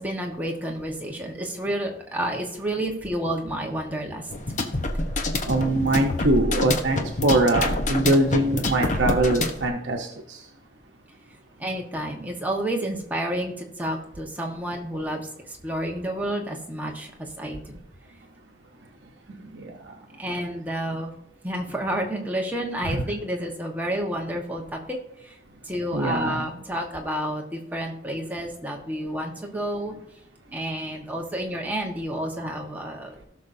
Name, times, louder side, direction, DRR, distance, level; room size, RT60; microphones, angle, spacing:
voice 1, 0.0-4.3 11.6-15.3 15.6-17.1 17.4-17.8 20.2-21.1 21.4-25.0 25.7-29.9 30.5-33.2, right 1 dB, 10° right, 0 dB, 1.3 m, -30 dB
sound 1, 4.3-9.7, left 2 dB, 40° left, 0.9 m, -26 dB
voice 2, 5.5-10.4 19.4-19.7 22.8-23.0 25.9-26.5, right 2 dB, 75° right, 1 dB, 0.9 m, -23 dB
17.5 x 6.3 x 2.7 m, 0.76 s
head